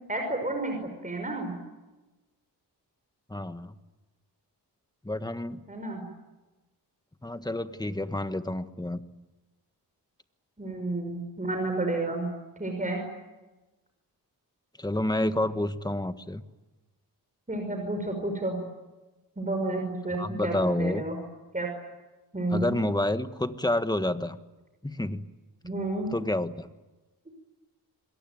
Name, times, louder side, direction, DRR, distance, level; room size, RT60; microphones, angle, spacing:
voice 1, 0.1-0.8 1.0-1.5 5.7-6.0 10.6-12.3 12.6-13.0 17.5-18.6 19.4-21.2 21.5-21.7 22.3-22.7 25.6-26.2, right 2 dB, 20° right, 3 dB, 5.6 m, -30 dB
voice 2, 3.3-3.7 5.0-5.6 7.2-9.0 14.8-16.4 20.2-21.0 22.5-24.4 24.8-25.2 26.1-26.7, left 1 dB, 10° left, 10 dB, 1.5 m, -29 dB
27.5 x 21.5 x 9.3 m, 1.1 s
wide cardioid pair, 95°, 41 cm